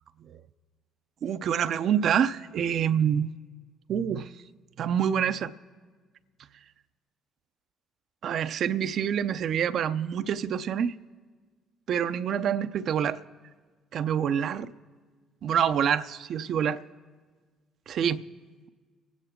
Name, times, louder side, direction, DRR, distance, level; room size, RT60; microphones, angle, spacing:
voice 1, 1.2-3.3 3.9-4.3 4.8-5.5 8.2-11.0 11.9-13.2 13.9-14.7 15.4-16.8 17.9-18.2, right 8 dB, 60° right, 0.5 m, -26 dB
25.0 x 9.5 x 3.7 m
hypercardioid pair, 55°, 0 cm